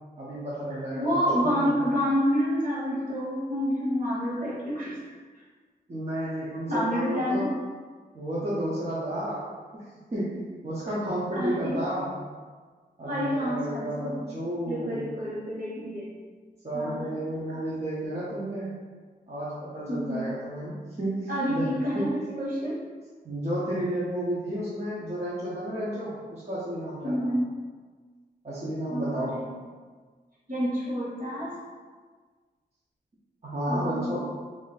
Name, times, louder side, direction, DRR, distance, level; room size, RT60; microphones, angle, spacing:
voice 1, 0.2-1.7 5.9-7.5 8.1-9.8 10.1-12.1 13.0-15.0 16.6-18.7 19.3-22.2 23.2-27.3 28.4-29.4 33.4-34.2, right 1 dB, 35° right, -9 dB, 0.7 m, -32 dB
voice 2, 0.9-5.0 6.7-7.5 11.3-11.8 13.0-14.2 14.6-16.1 16.7-17.1 19.9-20.2 21.3-22.8 27.0-27.5 28.9-29.4 30.5-31.5 33.7-34.2, equal, 55° right, -6 dB, 1.3 m, -28 dB
3.1 x 2.6 x 3.9 m, 1.5 s
wide cardioid pair, 145°, 17 cm